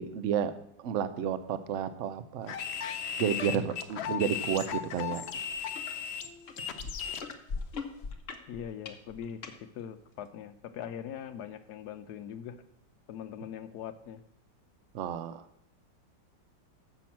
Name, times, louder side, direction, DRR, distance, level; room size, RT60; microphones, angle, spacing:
voice 1, 0.0-2.6 3.2-5.2 14.9-15.4, right 8 dB, 65° right, 11 dB, 0.7 m, -31 dB
sound 1, 2.5-7.3, left 8 dB, 85° left, 0.5 m, -36 dB
sound 2, 5.1-5.2 5.6-5.9 6.5-9.6 10.3-10.4, left 4 dB, 45° left, 0.9 m, -39 dB
voice 2, 8.5-12.6 13.1-14.2, left 9 dB, 70° left, 11 dB, 1.1 m, -41 dB
7.0 x 6.0 x 7.1 m, 0.71 s
omnidirectional pair, 2.0 m